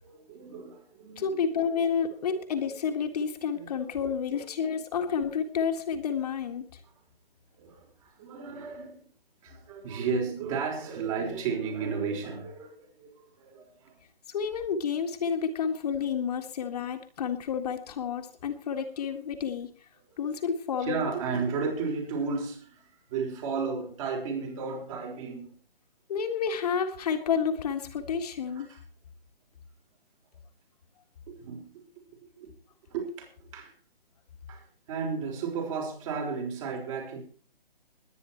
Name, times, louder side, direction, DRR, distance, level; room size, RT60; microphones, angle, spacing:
voice 1, 0.0-1.5 2.3-2.4 3.5-3.9 4.3-4.4 4.7-4.8 7.6-9.0 9.4-14.0 20.1-20.2 20.8-25.5 28.6-28.8 31.3-31.8 32.4-32.5 32.9-33.7 34.5-37.2, right 5 dB, 35° right, 5.4 m, -34 dB
voice 2, 1.2-6.7 14.3-19.7 20.2-21.1 26.1-28.7, left 6 dB, 40° left, 1.8 m, -30 dB
21.0 x 9.6 x 4.5 m
figure-of-eight pair, 140°, 29 cm